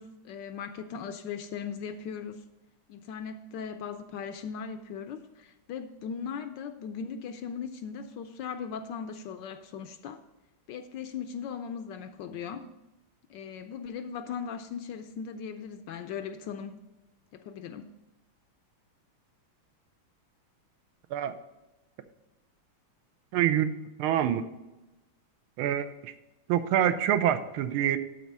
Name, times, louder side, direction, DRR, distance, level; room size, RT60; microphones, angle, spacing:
voice 1, 0.0-2.4 2.9-10.2 10.7-12.7 13.3-16.8 17.3-17.9, left 7 dB, 70° left, 1.1 m, -38 dB
voice 2, 23.3-23.7 24.0-24.4 25.6-26.1 26.5-28.0, right 10 dB, 85° right, 1.5 m, -26 dB
12.0 x 4.1 x 5.4 m
omnidirectional pair, 2.3 m